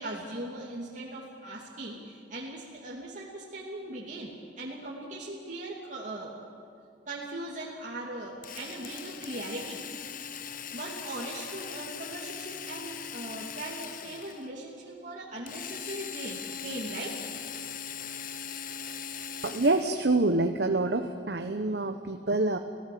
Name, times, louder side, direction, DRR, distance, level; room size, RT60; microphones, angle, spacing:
voice 1, 0.0-6.3 7.1-9.8 10.7-17.2, right 1 dB, 45° right, -4 dB, 2.6 m, -39 dB
Drill, 8.4-14.5 15.5-20.1, left 7 dB, 50° left, 1.0 m, -40 dB
voice 2, 19.4-22.6, right 2 dB, 65° right, 6 dB, 1.0 m, -26 dB
29.5 x 17.0 x 7.8 m, 2.4 s
head